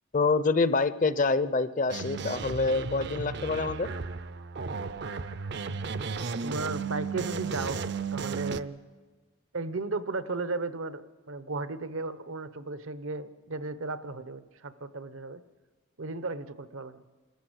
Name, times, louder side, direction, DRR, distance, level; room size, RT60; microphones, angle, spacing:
voice 1, 0.1-3.9, left 3 dB, 35° left, 14 dB, 0.6 m, -26 dB
sound 1, 1.9-8.6, right 5 dB, 55° right, 0.6 m, -34 dB
voice 2, 6.4-8.8 9.5-11.0 11.3-15.4 16.0-17.0, right 3 dB, 75° right, 13 dB, 0.9 m, -35 dB
27.5 x 14.0 x 7.9 m, 1.4 s
head